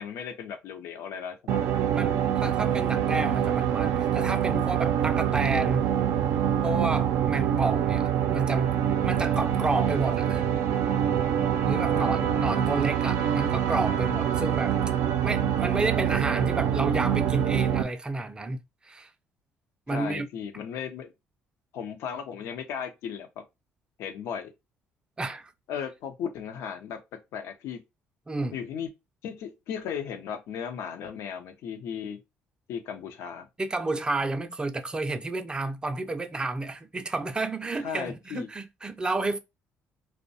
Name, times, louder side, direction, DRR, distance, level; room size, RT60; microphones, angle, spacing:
voice 1, 0.0-1.6 6.6-6.7 11.7-12.4 19.9-21.1 21.7-23.3 24.0-24.5 25.7-27.0 27.3-27.8 28.5-28.9 29.2-32.2 32.7-33.5 37.8-38.5, left 7 dB, 80° left, 0.5 m, -36 dB
sound 1, 1.5-17.8, right 9 dB, 85° right, 0.4 m, -25 dB
voice 2, 1.9-5.9 6.6-8.8 9.0-10.4 11.7-14.7 15.2-19.1 19.9-20.3 25.2-25.5 28.3-28.5 33.6-39.4, right 2 dB, 20° right, 0.4 m, -31 dB
2.5 x 2.1 x 2.5 m
cardioid pair, 95°, 5 cm